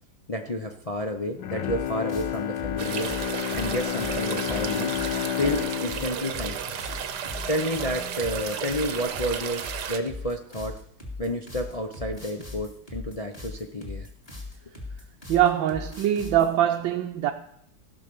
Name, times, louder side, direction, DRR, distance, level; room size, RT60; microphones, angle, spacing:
voice 1, 0.3-3.1 3.5-4.9 5.3-6.8 7.5-10.8 11.2-14.1, left 1 dB, 55° left, 0.4 m, -30 dB
Bowed string instrument, 1.3-7.6 8.0-8.1, left 12 dB, 75° left, 1.4 m, -31 dB
sound 1, 1.6-16.5, left 2 dB, 20° left, 2.6 m, -39 dB
sound 2, 2.8-10.0, right 8 dB, 65° right, 1.4 m, -33 dB
voice 2, 15.3-17.3, right 11 dB, 85° right, 1.5 m, -23 dB
17.0 x 5.8 x 6.8 m
omnidirectional pair, 2.1 m